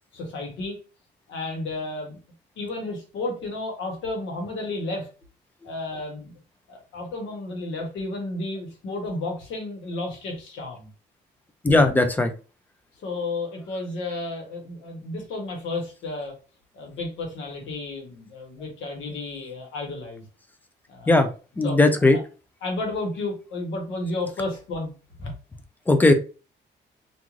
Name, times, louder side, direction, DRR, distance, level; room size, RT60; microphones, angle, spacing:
voice 1, 0.1-0.8 1.3-2.2 2.6-5.1 5.6-6.4 6.7-10.9 13.0-16.3 16.7-20.3 20.9-21.3 21.6-21.8 22.0-22.2 22.6-24.9 25.2-25.3, left 2 dB, 85° left, 2 dB, 1.1 m, -32 dB
voice 2, 11.6-12.3 21.1-21.3 21.6-22.2 25.9-26.1, left 2 dB, 10° left, 8 dB, 0.3 m, -17 dB
2.5 x 2.4 x 3.1 m, 0.34 s
cardioid pair, 160°, 19 cm